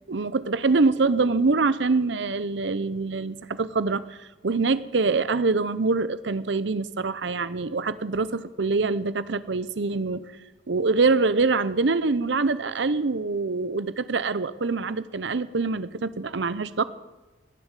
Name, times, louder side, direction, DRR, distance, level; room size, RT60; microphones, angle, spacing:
voice 1, 0.1-4.0 4.4-10.2 10.7-16.8, right 3 dB, 65° right, 15 dB, 0.7 m, -24 dB
19.5 x 7.3 x 8.3 m, 1.1 s
head